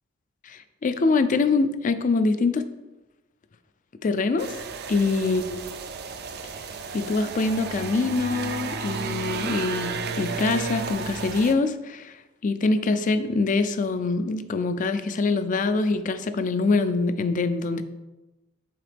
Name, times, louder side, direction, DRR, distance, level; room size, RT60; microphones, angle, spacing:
voice 1, 0.4-2.7 4.0-4.5 4.9-5.4 6.9-12.1 12.4-17.8, left 3 dB, 40° left, 11 dB, 0.4 m, -24 dB
sound 1, 4.4-11.5, right 5 dB, 55° right, 0.5 m, -33 dB
7.8 x 3.8 x 3.4 m, 1.0 s
head